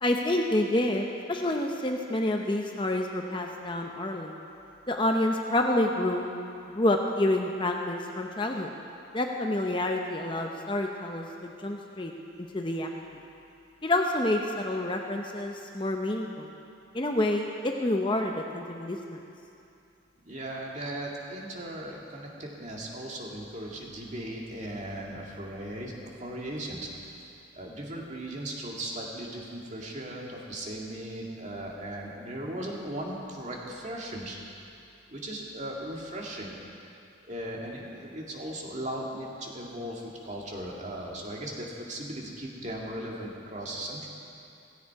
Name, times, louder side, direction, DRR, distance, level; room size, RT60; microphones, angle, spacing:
voice 1, 0.0-4.4 4.9-6.3 6.7-8.7 9.1-12.1 12.5-12.9 13.8-16.5 16.9-19.2, left 1 dB, 25° left, 2 dB, 0.8 m, -28 dB
voice 2, 20.2-34.4 35.1-36.6 37.2-44.1, right 1 dB, 35° right, -2 dB, 2.1 m, -37 dB
16.0 x 16.0 x 4.7 m, 2.6 s
head